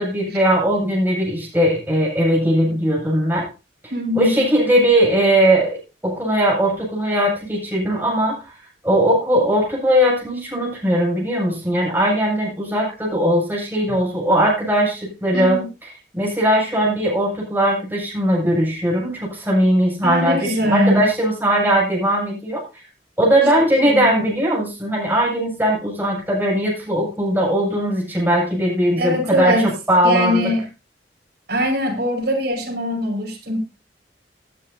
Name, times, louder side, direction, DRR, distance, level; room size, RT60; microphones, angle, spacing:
voice 1, 0.0-3.5 4.1-5.8 6.0-8.5 8.8-22.6 23.2-30.4, equal, 10° right, -3 dB, 7.4 m, -19 dB
voice 2, 3.9-4.5 15.3-15.6 20.0-21.1 23.8-24.2 29.0-29.7 30.0-30.6 31.5-33.6, equal, 65° right, 0 dB, 5.7 m, -21 dB
19.0 x 10.0 x 2.8 m, 0.29 s
head